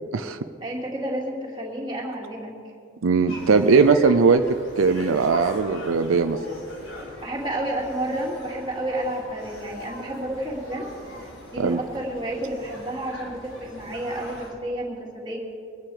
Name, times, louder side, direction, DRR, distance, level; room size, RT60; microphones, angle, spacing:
voice 1, 0.6-2.5 7.2-10.9 11.5-15.4, right 1 dB, 20° right, -3 dB, 2.7 m, -30 dB
voice 2, 3.0-4.4 4.8-6.4 11.6-11.8, right 4 dB, 85° right, 9 dB, 0.5 m, -19 dB
sound 1, 3.3-14.5, left 1 dB, 80° left, 4.0 m, -41 dB
23.5 x 9.0 x 4.9 m, 2.4 s
head